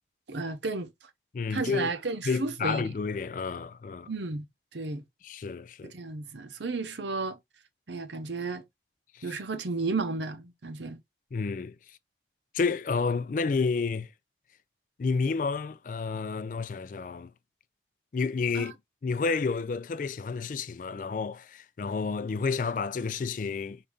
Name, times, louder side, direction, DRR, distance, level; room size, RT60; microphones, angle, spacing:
voice 1, 0.3-0.9 1.5-2.9 4.1-4.4 4.7-5.0 5.8-7.4 7.9-8.6 9.2-11.0 18.5-18.7, right 3 dB, 85° right, 0.7 m, -33 dB
voice 2, 1.3-1.9 2.2-4.1 5.2-5.9 9.1-9.2 11.3-11.7 12.5-14.1 15.0-17.3 18.1-18.7 19.0-23.8, left 4 dB, 45° left, 0.3 m, -30 dB
4.9 x 2.7 x 3.5 m
head